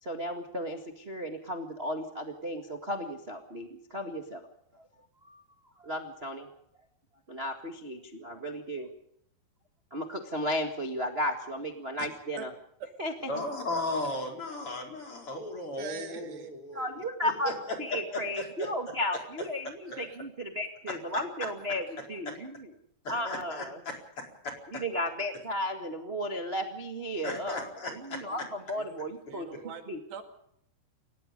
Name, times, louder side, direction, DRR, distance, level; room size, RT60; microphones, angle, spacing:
voice 1, 0.0-4.5 4.7-4.9 5.3-5.4 5.8-6.5 7.3-8.9 9.9-12.5 13.0-13.3 16.7-17.5 17.8-21.8 22.1-22.7 23.1-23.8 24.7-29.5 29.9-30.0, equal, 35° right, 4 dB, 0.9 m, -34 dB
voice 2, 13.3-16.9 17.2-17.5 18.1-18.9 20.9-21.0 21.4-21.5 22.3-22.4 23.0-24.8 27.2-28.2, left 1 dB, 35° left, 2 dB, 5.1 m, -36 dB
voice 3, 15.8-16.5 19.9-20.2 27.5-27.6 28.3-28.4 28.7-29.8 30.1-30.2, right 6 dB, 85° right, 5 dB, 4.4 m, -43 dB
29.0 x 17.5 x 5.3 m, 0.70 s
omnidirectional pair, 4.7 m